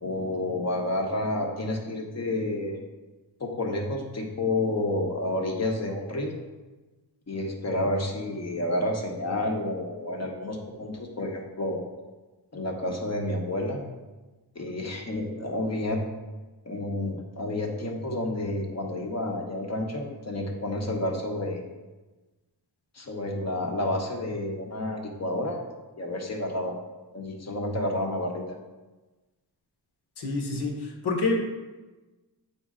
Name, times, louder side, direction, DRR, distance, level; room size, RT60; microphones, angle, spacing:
voice 1, 0.0-2.8 3.4-6.3 7.3-11.8 12.5-13.8 14.5-16.0 16.6-21.6 22.9-25.6 26.0-26.8 27.1-28.4, left 1 dB, 40° left, 1 dB, 1.2 m, -30 dB
voice 2, 30.2-31.4, left 3 dB, 70° left, 1 dB, 1.4 m, -27 dB
8.4 x 4.3 x 3.7 m, 1.2 s
cardioid pair, 95°, 42 cm